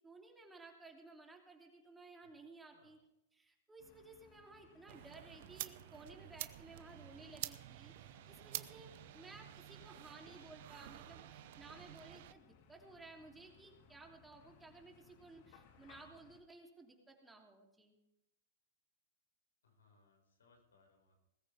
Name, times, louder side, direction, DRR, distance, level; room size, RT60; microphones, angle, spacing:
voice 1, 0.0-3.0 3.3-18.0, right 3 dB, 10° right, 0 dB, 3.2 m, -57 dB
sound 1, 3.8-16.4, left 6 dB, 55° left, 2.2 m, -66 dB
sound 2, 4.9-12.3, right 15 dB, 60° right, 0.8 m, -49 dB
voice 2, 19.6-21.2, left 3 dB, 85° left, 1 dB, 5.7 m, -70 dB
20.5 x 14.0 x 3.6 m, 0.91 s
hypercardioid pair, 110°, 0 cm